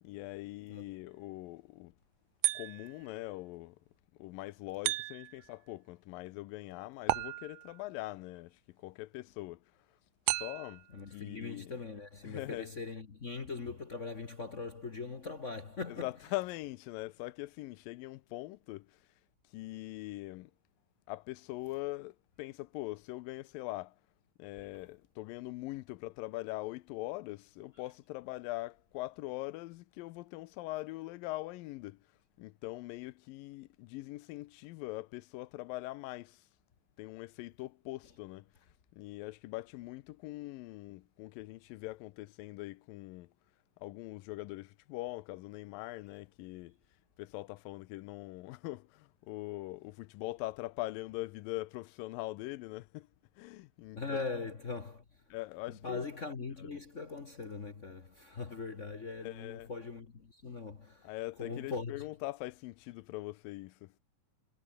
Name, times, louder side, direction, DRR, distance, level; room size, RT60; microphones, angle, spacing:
voice 1, 0.0-1.9 2.5-3.8 4.2-10.0 10.3-10.9 11.1-11.7 12.2-12.7 15.9-19.0 19.5-20.5 21.1-24.0 24.4-32.1 32.4-36.5 37.0-43.3 43.8-46.8 47.2-53.1 53.4-54.2 55.3-56.1 56.6-56.8 59.2-59.7 61.0-63.9, left 19 dB, 90° left, 2.4 m, -42 dB
sound 1, 2.4-3.1 4.9-5.5 7.1-7.8 10.3-10.9, right 17 dB, 75° right, 2.1 m, -34 dB
voice 2, 10.9-16.1 24.7-24.8 53.9-55.2 55.7-61.1 61.4-62.0, left 4 dB, 65° left, 0.7 m, -41 dB
omnidirectional pair, 4.0 m